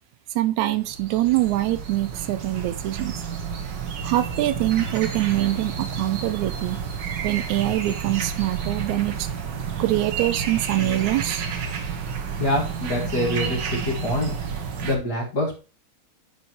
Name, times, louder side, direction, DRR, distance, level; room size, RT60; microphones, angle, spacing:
voice 1, 0.4-3.1 4.0-6.8 7.2-9.3 9.8-11.5, right 15 dB, 80° right, 13 dB, 1.9 m, -24 dB
sound 1, 0.7-15.0, right 6 dB, 60° right, 1.2 m, -30 dB
voice 2, 12.4-14.3 14.8-15.6, left 1 dB, 35° left, -2 dB, 2.1 m, -25 dB
11.0 x 5.0 x 3.0 m, 0.33 s
omnidirectional pair, 3.4 m